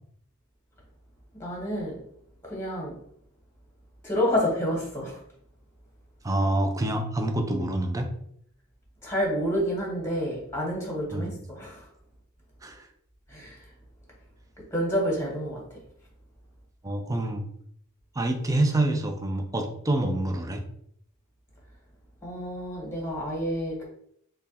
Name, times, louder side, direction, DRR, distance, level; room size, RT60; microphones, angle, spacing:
voice 1, 1.3-2.0 2.4-3.0 4.0-5.2 9.0-11.9 13.3-13.7 14.6-15.8 22.2-23.8, equal, 10° left, -2 dB, 1.1 m, -29 dB
voice 2, 6.2-8.1 11.1-11.3 12.6-12.9 16.8-17.4 18.2-20.6, right 1 dB, 15° right, 5 dB, 0.4 m, -26 dB
3.4 x 2.2 x 4.0 m, 0.69 s
head